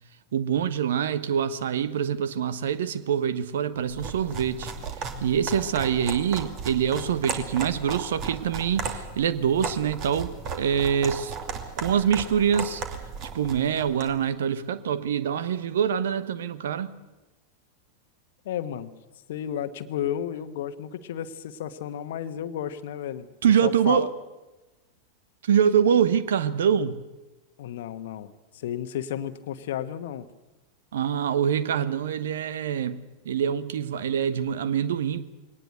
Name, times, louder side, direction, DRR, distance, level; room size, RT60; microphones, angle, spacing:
voice 1, 0.3-4.7 5.2-11.3 11.8-12.8 13.3-16.9 23.4-24.1 25.4-27.0 30.9-35.3, right 8 dB, 60° right, 15 dB, 1.1 m, -25 dB
sound 1, 3.9-14.2, right 5 dB, 35° right, 2.7 m, -35 dB
voice 2, 18.4-18.9 19.3-23.3 23.6-24.1 27.6-30.3, left 10 dB, 55° left, 11 dB, 1.2 m, -32 dB
22.0 x 18.5 x 8.1 m, 1.1 s
figure-of-eight pair, 90°, 0 cm